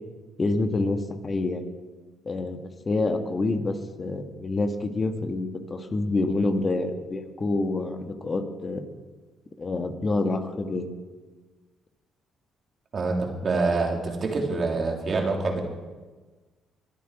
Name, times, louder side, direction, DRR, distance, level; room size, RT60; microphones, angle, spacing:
voice 1, 0.4-1.6 2.2-8.8 9.6-10.9, left 2 dB, 35° left, 6 dB, 1.5 m, -27 dB
voice 2, 12.9-15.6, right 3 dB, 45° right, 1 dB, 3.0 m, -26 dB
22.5 x 8.5 x 4.9 m, 1.3 s
supercardioid pair, 60°, 0 cm